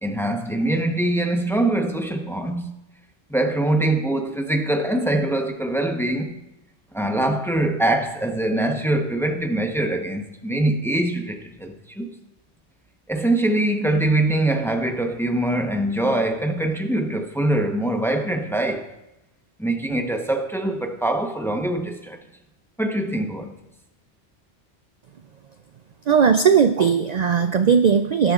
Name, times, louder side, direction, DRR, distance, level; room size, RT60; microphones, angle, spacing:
voice 1, 0.0-2.8 3.3-6.4 6.9-12.1 13.1-18.9 19.6-22.2 22.8-23.5, right 1 dB, ahead, 0.8 m, -23 dB
voice 2, 26.1-28.3, right 6 dB, 55° right, 0.5 m, -17 dB
19.0 x 10.0 x 2.4 m
omnidirectional pair, 1.1 m